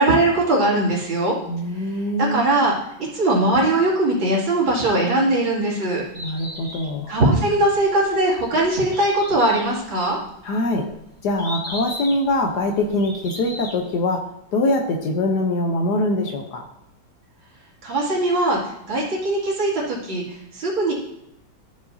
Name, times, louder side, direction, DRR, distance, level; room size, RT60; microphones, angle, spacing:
voice 1, 0.0-1.3 1.8-1.9 2.3-2.7 3.1-6.0 7.1-10.2 17.8-18.6 18.9-20.9, right 2 dB, 75° right, -6 dB, 3.3 m, -20 dB
voice 2, 1.5-2.4 6.2-7.2 10.4-10.8 11.2-14.2 14.5-16.6, left 1 dB, 60° left, 4 dB, 1.3 m, -23 dB
Bird, 6.0-14.0, equal, 5° right, 2.3 m, -37 dB
14.0 x 5.3 x 2.7 m, 0.82 s
omnidirectional pair, 2.2 m